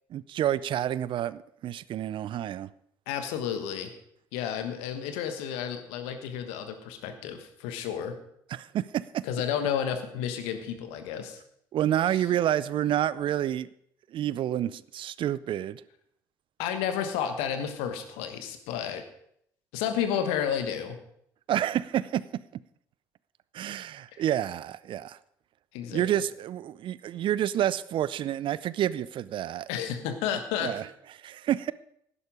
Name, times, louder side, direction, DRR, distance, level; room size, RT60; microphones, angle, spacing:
voice 1, 0.1-2.7 8.5-9.2 11.7-13.7 14.1-15.8 21.5-22.2 23.5-25.2 25.9-29.7 30.6-30.8 31.2-31.7, right 11 dB, 55° right, 19 dB, 0.5 m, -29 dB
voice 2, 3.1-3.9 4.3-8.1 9.2-11.4 12.1-12.2 16.6-19.0 19.7-21.0 25.7-26.2 29.7-30.7, left 8 dB, 75° left, 8 dB, 1.3 m, -31 dB
11.5 x 10.0 x 5.1 m, 0.71 s
hypercardioid pair, 50°, 10 cm